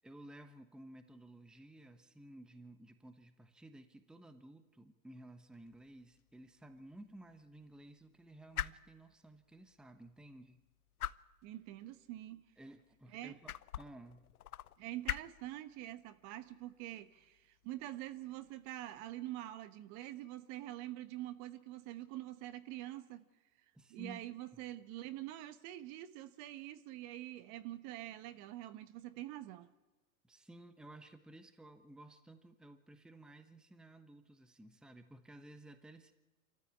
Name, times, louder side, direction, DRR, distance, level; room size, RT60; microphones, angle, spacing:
voice 1, 0.0-10.6 12.6-14.3 23.7-24.6 30.2-36.1, right 1 dB, ahead, 1.1 m, -55 dB
sound 1, 5.5-19.1, left 11 dB, 85° left, 0.8 m, -48 dB
voice 2, 11.4-12.4 13.1-13.3 14.8-23.2 23.9-29.7, right 14 dB, 40° right, 1.3 m, -45 dB
26.5 x 14.0 x 8.7 m
hypercardioid pair, 115°, 43 cm